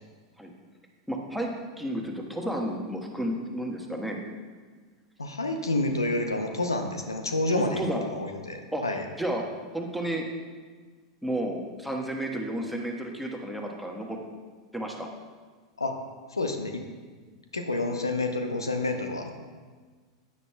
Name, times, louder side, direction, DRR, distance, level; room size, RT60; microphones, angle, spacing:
voice 1, 1.1-4.2 7.5-8.0 8.7-8.8 9.2-9.4 9.7-10.2 11.2-14.2 14.7-15.1, right 1 dB, ahead, 1 dB, 1.2 m, -32 dB
voice 2, 5.2-9.0 15.8-16.0 16.3-16.8 17.5-19.3, left 2 dB, 85° left, 5 dB, 0.7 m, -29 dB
9.6 x 9.6 x 2.2 m, 1.5 s
figure-of-eight pair, 90°, 2 cm